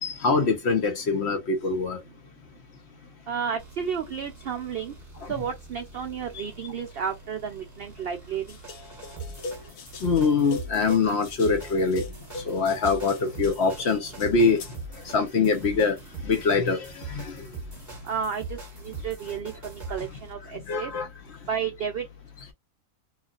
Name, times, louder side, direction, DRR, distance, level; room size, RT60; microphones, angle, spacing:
voice 1, 0.0-2.0 5.2-5.3 6.3-6.4 10.0-12.1 12.3-14.6 14.9-16.0 16.2-17.5 20.5-21.1, left 4 dB, 60° left, 0.8 m, -24 dB
voice 2, 3.3-4.9 5.3-8.4 18.0-18.6 18.8-20.9 21.5-22.0, right 7 dB, 80° right, 0.5 m, -32 dB
sound 1, 3.6-20.3, right 3 dB, 10° right, 1.3 m, -42 dB
sound 2, 8.5-14.8, left 2 dB, 80° left, 1.3 m, -40 dB
3.0 x 2.3 x 2.3 m
omnidirectional pair, 1.6 m